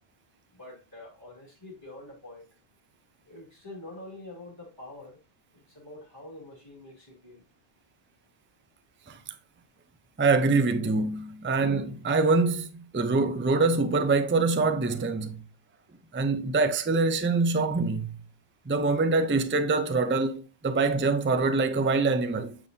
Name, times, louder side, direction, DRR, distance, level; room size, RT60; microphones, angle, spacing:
voice 1, 0.5-2.5 3.3-5.2 5.5-7.4, left 2 dB, 20° left, 3.0 m, -46 dB
voice 2, 10.2-15.4 16.1-18.2 18.7-22.6, right 3 dB, 15° right, 0.4 m, -25 dB
8.5 x 5.4 x 2.7 m
omnidirectional pair, 1.1 m